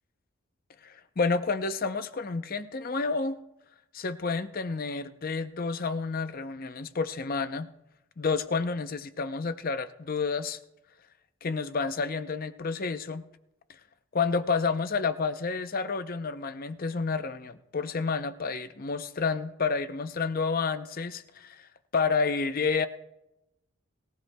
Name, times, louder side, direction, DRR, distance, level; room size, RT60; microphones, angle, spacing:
voice 1, 0.8-3.4 3.9-7.7 8.2-10.6 11.4-13.2 14.1-22.9, left 4 dB, 40° left, 11 dB, 0.5 m, -30 dB
23.0 x 15.0 x 2.2 m, 0.91 s
head